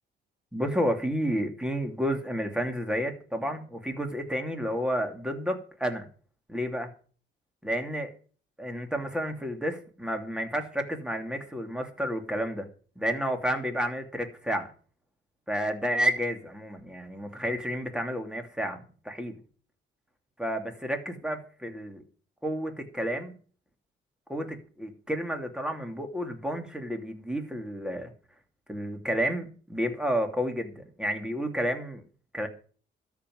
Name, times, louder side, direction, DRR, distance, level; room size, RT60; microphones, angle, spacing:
voice 1, 0.5-6.1 6.5-6.9 7.6-8.1 8.6-12.7 13.0-14.7 15.5-19.4 20.4-22.0 22.4-23.3 24.3-28.1 28.7-32.0 32.3-32.5, equal, 5° right, 5 dB, 2.9 m, -31 dB
13.0 x 6.0 x 9.5 m, 0.42 s
cardioid pair, 90°, 20 cm